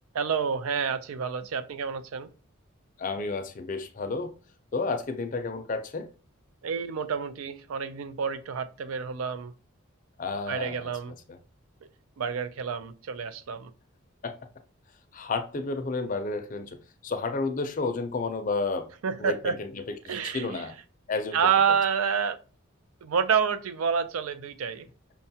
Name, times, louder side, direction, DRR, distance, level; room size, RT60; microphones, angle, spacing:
voice 1, 0.1-2.3 6.6-9.5 10.5-11.1 12.2-13.7 19.0-19.6 20.1-20.6 21.3-22.4 23.0-24.9, right 6 dB, 85° right, 0.4 m, -28 dB
voice 2, 3.0-4.3 4.7-6.1 10.2-10.9 11.3-11.4 14.2-14.4 15.1-16.8 17.0-18.9 19.2-20.7 21.1-21.4, left 3 dB, 40° left, 0.4 m, -31 dB
5.5 x 2.3 x 2.7 m
head